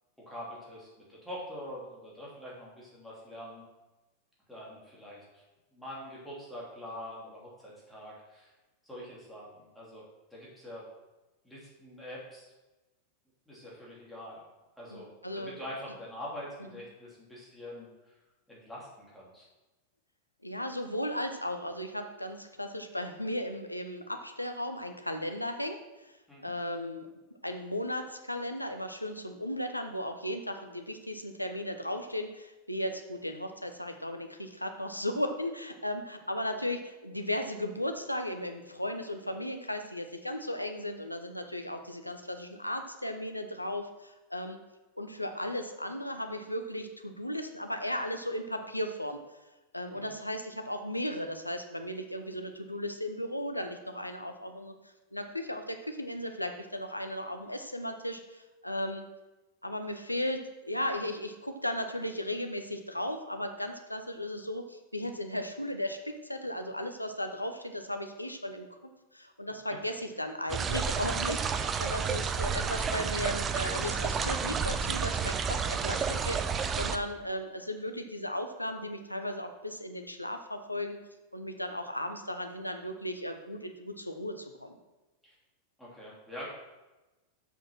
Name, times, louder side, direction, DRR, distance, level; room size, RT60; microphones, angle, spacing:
voice 1, 0.2-3.6 4.5-5.4 5.7-8.5 8.8-10.0 10.3-10.9 11.4-12.5 13.5-14.4 14.8-15.1 15.3-18.2 18.5-19.5 26.3-26.5 49.9-50.2 85.2-85.3 85.8-86.5, equal, ahead, -7 dB, 2.9 m, -44 dB
voice 2, 14.9-15.6 20.4-26.1 26.4-27.1 27.4-44.6 45.0-49.2 49.7-54.7 55.1-59.0 59.6-68.7 69.1-76.4 76.7-81.0 81.3-84.8, left 1 dB, 85° left, 6 dB, 0.8 m, -36 dB
sound 1, 70.5-77.0, right 6 dB, 25° right, 0.6 m, -31 dB
7.3 x 6.2 x 5.9 m, 1.1 s
figure-of-eight pair, 90°, 0 cm